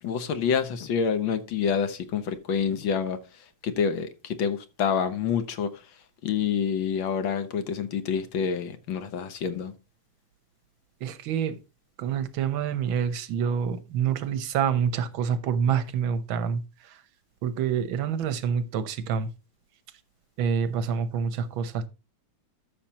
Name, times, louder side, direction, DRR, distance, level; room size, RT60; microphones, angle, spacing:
voice 1, 0.0-5.8 6.2-9.7, left 7 dB, 75° left, 1.9 m, -27 dB
voice 2, 11.0-11.6 12.0-17.0 17.4-19.3 20.4-21.9, right 7 dB, 80° right, 1.7 m, -27 dB
13.0 x 6.7 x 2.9 m
omnidirectional pair, 2.2 m